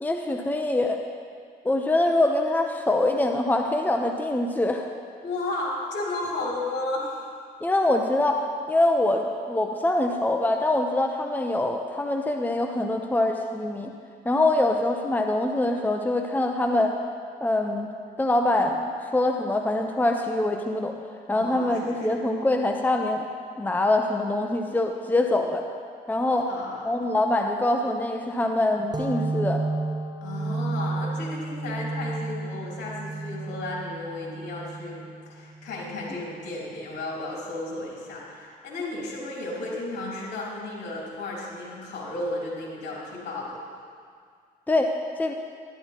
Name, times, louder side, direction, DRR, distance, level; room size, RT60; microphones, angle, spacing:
voice 1, 0.0-1.0 1.6-4.9 7.6-13.9 14.2-16.9 17.4-17.9 18.2-20.9 21.3-23.3 23.6-25.6 26.1-26.5 26.8-29.6 44.7-44.9 45.2-45.3, left 2 dB, 10° left, 3 dB, 0.7 m, -24 dB
voice 2, 5.2-7.2 21.3-22.2 26.2-26.9 30.2-43.6, left 2 dB, 70° left, -5 dB, 3.2 m, -33 dB
sound 1, 28.9-36.2, right 3 dB, 20° right, 1.1 m, -32 dB
12.5 x 11.5 x 3.0 m, 2.1 s
supercardioid pair, 65°, 19 cm